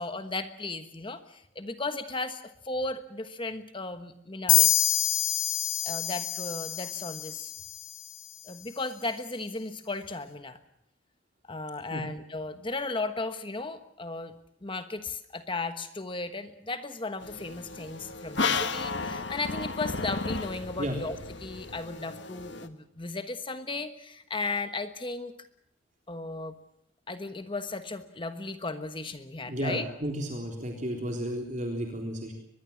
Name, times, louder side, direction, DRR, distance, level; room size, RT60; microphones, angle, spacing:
voice 1, 0.0-4.9 5.8-7.5 8.4-10.6 11.4-14.3 14.6-25.5 26.1-26.6 27.1-29.9, left 3 dB, 25° left, 10 dB, 1.3 m, -35 dB
sound 1, 4.5-8.1, left 13 dB, 75° left, 1.4 m, -26 dB
sound 2, 17.2-22.7, left 4 dB, 60° left, 1.6 m, -34 dB
voice 2, 29.5-32.3, equal, 40° right, 2 dB, 3.7 m, -33 dB
23.5 x 21.5 x 7.2 m, 0.74 s
head